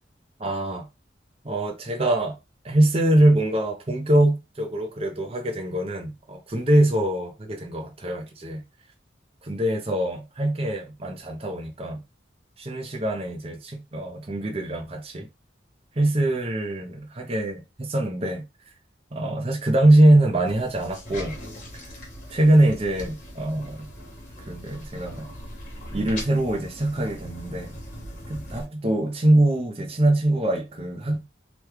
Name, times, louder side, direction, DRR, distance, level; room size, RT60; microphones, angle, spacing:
voice 1, 0.4-0.9 1.4-2.4 2.6-8.6 9.4-12.0 12.6-15.3 16.0-18.4 19.1-21.4 22.3-23.9 24.5-25.3 25.9-27.8 28.3-31.2, right 1 dB, 35° right, 0.7 m, -23 dB
sound 1, 20.5-28.6, left 1 dB, 45° left, 1.1 m, -40 dB
3.0 x 2.3 x 3.3 m
head